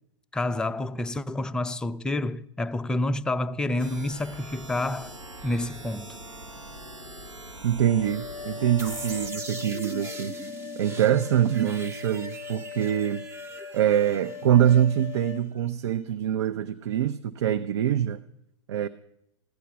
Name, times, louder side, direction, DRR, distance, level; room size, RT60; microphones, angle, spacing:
voice 1, 0.3-5.2 5.4-6.2, left 2 dB, 5° left, 0.4 m, -29 dB
sound 1, 3.8-9.3, right 1 dB, 90° right, 1.2 m, -43 dB
voice 2, 7.6-10.4 10.8-13.3 13.7-18.2 18.7-18.9, right 10 dB, 60° right, 0.6 m, -24 dB
sound 2, 7.9-15.4, left 7 dB, 80° left, 0.4 m, -40 dB
sound 3, 8.8-15.6, right 3 dB, 20° right, 0.8 m, -42 dB
15.5 x 10.0 x 5.8 m
figure-of-eight pair, 105°, 16 cm